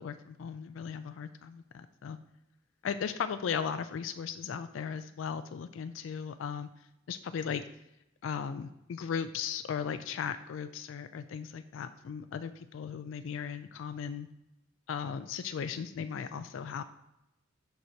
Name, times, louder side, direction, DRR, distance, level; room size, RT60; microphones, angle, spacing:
voice 1, 0.0-2.2 2.8-6.7 7.1-7.6 8.2-14.3 14.9-16.8, left 7 dB, 85° left, 10 dB, 0.3 m, -37 dB
11.5 x 4.5 x 2.8 m, 0.88 s
head